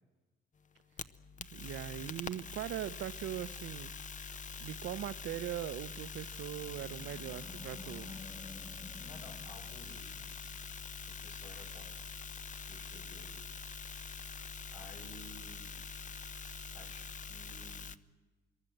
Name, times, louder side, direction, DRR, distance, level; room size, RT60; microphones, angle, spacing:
sound 1, 0.7-18.0, left 5 dB, 40° left, 0.9 m, -45 dB
voice 1, 1.5-3.9 4.6-8.2, right 12 dB, 75° right, 0.8 m, -40 dB
Animal, 6.0-10.5, left 3 dB, 10° left, 1.2 m, -52 dB
voice 2, 9.0-10.5 11.1-12.0 12.7-13.4 14.7-15.7 16.7-17.9, left 2 dB, 80° left, 6.2 m, -55 dB
25.0 x 22.0 x 7.9 m
cardioid pair, 90°, 20 cm